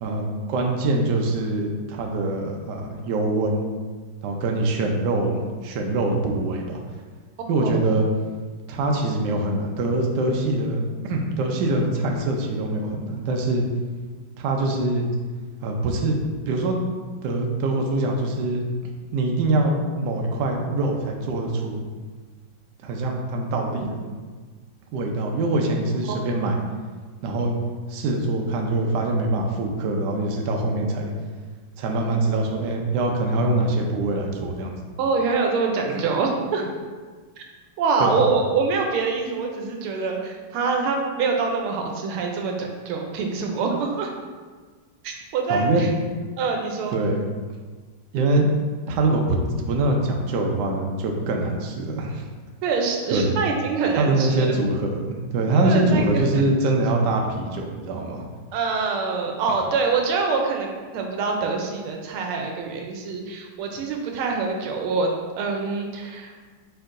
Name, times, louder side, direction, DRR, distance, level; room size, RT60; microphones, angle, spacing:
voice 1, 0.0-3.7 4.2-6.8 7.5-8.1 8.7-13.7 14.4-15.1 15.6-16.2 16.5-16.8 17.2-18.6 19.1-21.8 22.8-24.1 24.9-26.6 27.2-27.5 27.9-31.1 31.8-34.8 35.9-36.0 36.6-36.7 38.0-38.3 45.5-45.9 46.9-47.2 48.1-48.5 48.9-52.2 53.1-53.3 54.0-58.2, right 2 dB, 70° right, 1 dB, 1.1 m, -24 dB
voice 2, 35.0-36.7 37.4-37.5 37.8-44.1 45.0-45.9 46.4-47.0 52.6-54.6 55.6-56.0 56.3-56.4 58.5-66.3, right 4 dB, 90° right, 2 dB, 1.5 m, -25 dB
4.5 x 4.4 x 2.5 m, 1.4 s
omnidirectional pair, 2.3 m